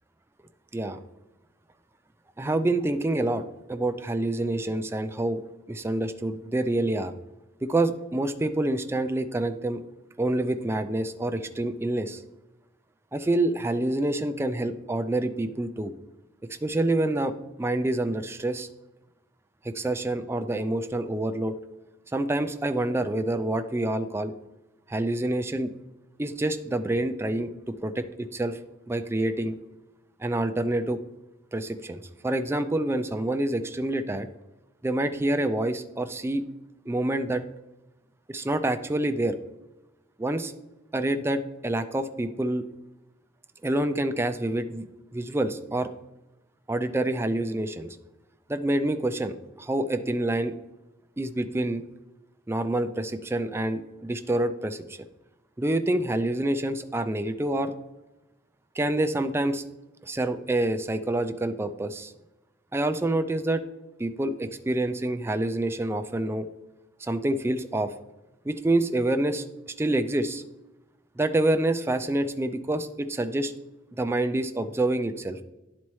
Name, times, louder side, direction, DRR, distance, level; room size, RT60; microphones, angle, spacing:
voice 1, 2.4-3.4 3.7-5.4 5.7-7.1 7.6-9.8 10.2-12.2 13.1-15.9 16.6-17.3 17.6-18.7 19.6-21.5 22.1-24.3 24.9-25.7 26.2-27.5 27.8-28.6 28.9-29.6 30.2-31.0 31.5-34.3 34.8-36.4 36.9-37.4 38.3-39.3 40.2-40.5 40.9-42.6 43.6-44.9 45.1-45.9 46.7-48.0 48.5-49.3 49.6-50.5 51.2-51.8 52.5-54.8 55.6-57.7 58.8-59.6 60.1-62.1 62.7-63.6 64.0-66.5 67.0-67.9 68.5-70.4 71.2-73.5 74.0-75.4, right 1 dB, 15° right, 8 dB, 0.4 m, -27 dB
11.0 x 4.2 x 3.1 m, 1.0 s
head